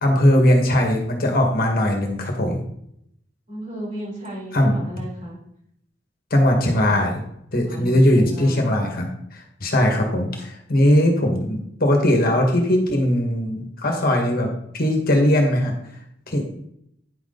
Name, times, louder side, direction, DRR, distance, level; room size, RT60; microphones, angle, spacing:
voice 1, 0.0-2.6 4.5-4.8 6.3-7.2 7.5-15.7 16.3-16.4, left 1 dB, 55° left, 2 dB, 1.8 m, -19 dB
voice 2, 3.5-5.4 7.7-8.8, equal, 40° right, -5 dB, 4.0 m, -34 dB
9.9 x 6.1 x 4.0 m, 0.73 s
head